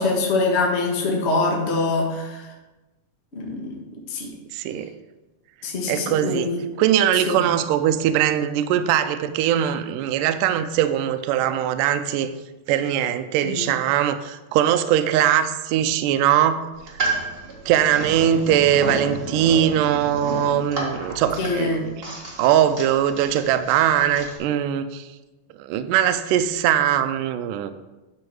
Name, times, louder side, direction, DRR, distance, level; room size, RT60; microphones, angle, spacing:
voice 1, 0.0-2.5 3.3-3.8 4.1-4.3 5.6-6.6 7.3-7.4 13.4-13.7 21.4-21.8, left 3 dB, 85° left, -1 dB, 0.5 m, -24 dB
voice 2, 4.5-4.9 5.9-6.5 6.8-12.3 12.7-16.7 17.7-22.0 22.4-25.1 25.6-27.7, right 10 dB, 80° right, 9 dB, 2.0 m, -21 dB
sound 1, 16.7-24.4, right 3 dB, 50° right, 0.7 m, -32 dB
9.5 x 6.1 x 4.7 m, 1.1 s
omnidirectional pair, 4.0 m